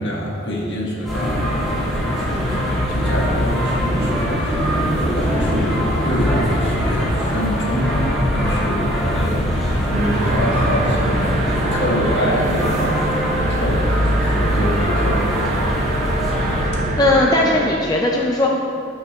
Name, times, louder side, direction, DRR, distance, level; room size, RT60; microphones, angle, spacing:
voice 1, 0.0-11.4 11.7-15.7 16.3-16.9, equal, 60° left, -4 dB, 1.6 m, -25 dB
sound 1, 1.0-16.7, equal, ahead, 1.9 m, -23 dB
sound 2, 2.2-17.0, left 1 dB, 80° left, 0.5 m, -26 dB
sound 3, 9.9-17.7, right 4 dB, 40° right, 0.5 m, -28 dB
voice 2, 17.0-18.5, left 2 dB, 20° left, -1 dB, 0.4 m, -17 dB
13.0 x 6.3 x 2.4 m, 2.7 s
head